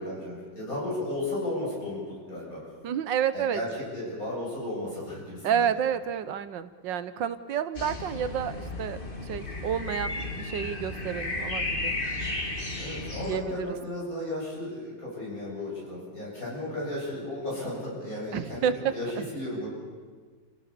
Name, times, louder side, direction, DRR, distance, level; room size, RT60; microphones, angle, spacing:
voice 1, 0.0-2.6 3.3-5.7 12.8-19.7, left 1 dB, 50° left, -5 dB, 8.5 m, -34 dB
voice 2, 2.8-3.6 5.4-11.9 13.3-13.8 18.3-18.9, right 8 dB, 80° right, 13 dB, 1.6 m, -30 dB
sound 1, 7.7-13.4, left 2 dB, 30° left, 2.3 m, -33 dB
28.5 x 17.0 x 6.9 m, 1.5 s
omnidirectional pair, 2.0 m